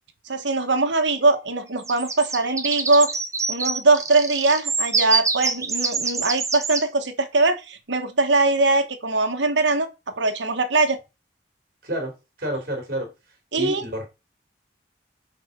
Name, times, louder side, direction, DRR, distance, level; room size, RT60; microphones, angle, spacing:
voice 1, 0.3-3.1 3.5-9.9 10.2-11.0 13.5-13.8, right 3 dB, 85° right, 1.4 m, -21 dB
sound 1, 1.8-6.8, right 4 dB, 15° right, 0.9 m, -26 dB
voice 2, 11.8-13.1 13.6-14.0, equal, 50° right, 3.8 m, -29 dB
7.9 x 4.2 x 5.4 m
head